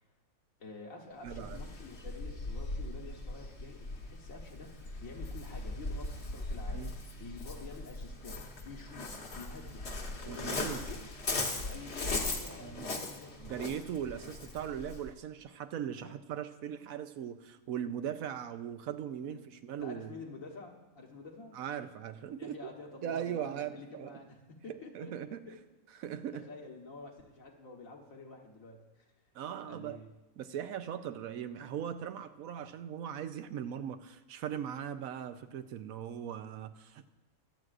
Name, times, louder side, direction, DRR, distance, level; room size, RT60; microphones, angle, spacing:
voice 1, 0.6-9.8 10.2-11.0 11.6-13.5 16.0-16.1 19.3-19.4 19.8-21.6 22.4-25.6 26.3-29.0 29.6-30.1, left 3 dB, 65° left, 1 dB, 1.8 m, -49 dB
voice 2, 1.2-1.6 6.7-6.9 10.3-10.8 12.6-12.9 13.4-20.1 21.5-22.6 23.0-24.2 24.9-25.4 26.0-26.5 29.3-30.0 30.4-37.1, right 9 dB, 75° right, 10 dB, 1.0 m, -39 dB
Waves surf, 1.3-15.1, left 2 dB, 50° left, 1.4 m, -39 dB
23.5 x 7.9 x 2.5 m, 1.1 s
omnidirectional pair, 1.5 m